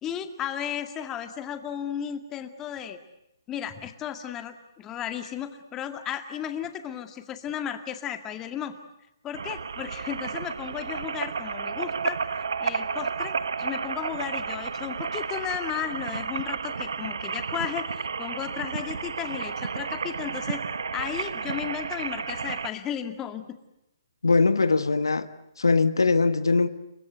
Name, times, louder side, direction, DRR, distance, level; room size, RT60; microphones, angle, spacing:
voice 1, 0.0-3.0 3.5-8.7 9.2-12.2 12.6-20.6 20.9-23.6, left 9 dB, 20° left, 8 dB, 2.0 m, -34 dB
sound 1, 9.3-22.7, right 5 dB, 75° right, 1.2 m, -32 dB
voice 2, 24.2-25.3 25.6-26.7, left 3 dB, 90° left, 12 dB, 1.5 m, -21 dB
29.5 x 23.0 x 8.2 m, 0.85 s
hypercardioid pair, 145°, 2 cm